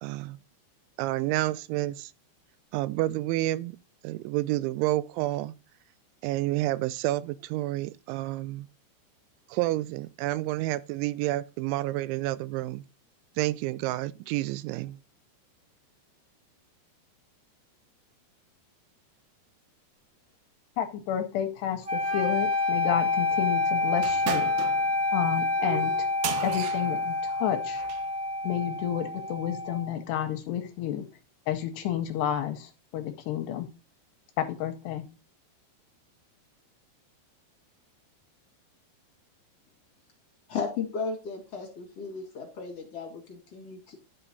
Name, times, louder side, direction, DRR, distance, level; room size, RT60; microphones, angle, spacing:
voice 1, 0.0-0.4 1.0-2.1 2.7-3.8 4.0-5.5 6.2-8.7 9.5-12.8 13.4-15.0, right 17 dB, 90° right, 3.0 m, -29 dB
voice 2, 20.8-24.5 25.1-26.1 26.4-27.8 28.4-31.1 31.5-33.7 34.4-35.0, left 10 dB, 75° left, 2.7 m, -31 dB
sound 1, 21.9-29.9, left 3 dB, 60° right, 1.1 m, -28 dB
sound 2, 24.0-28.1, right 9 dB, 75° right, 2.7 m, -37 dB
voice 3, 40.5-44.0, left 5 dB, 45° left, 2.5 m, -35 dB
11.0 x 5.8 x 4.0 m
omnidirectional pair, 5.2 m